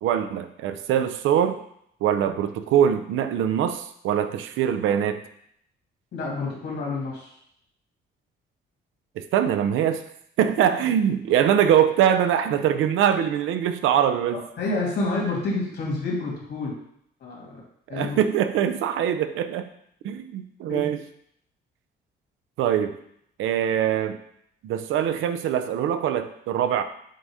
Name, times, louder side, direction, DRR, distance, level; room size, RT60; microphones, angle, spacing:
voice 1, 0.0-1.6 2.0-5.2 9.2-10.0 10.4-14.4 17.9-19.7 20.0-21.0 22.6-23.0 23.4-24.2 24.6-26.8, right 9 dB, 85° right, 9 dB, 0.5 m, -23 dB
voice 2, 6.1-7.3 14.6-16.8 17.2-17.6 17.9-18.2 20.7-20.8, left 3 dB, 60° left, -3 dB, 2.5 m, -28 dB
7.7 x 2.7 x 4.8 m, 0.72 s
cardioid pair, 90°, 20 cm